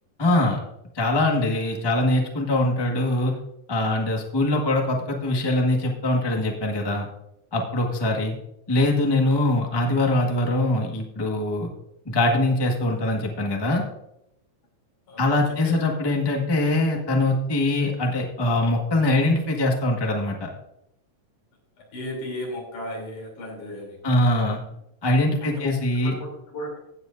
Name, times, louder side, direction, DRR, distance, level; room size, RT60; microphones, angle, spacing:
voice 1, 0.2-0.6 0.9-3.3 3.7-7.1 7.5-8.3 8.7-11.7 12.0-13.8 15.2-20.5 24.0-24.6 25.0-26.1, left 1 dB, 20° left, 1 dB, 0.7 m, -22 dB
voice 2, 15.1-15.8 21.9-24.0 25.4-26.8, left 1 dB, 80° left, -1 dB, 4.8 m, -35 dB
16.5 x 7.9 x 2.6 m, 0.82 s
omnidirectional pair, 3.5 m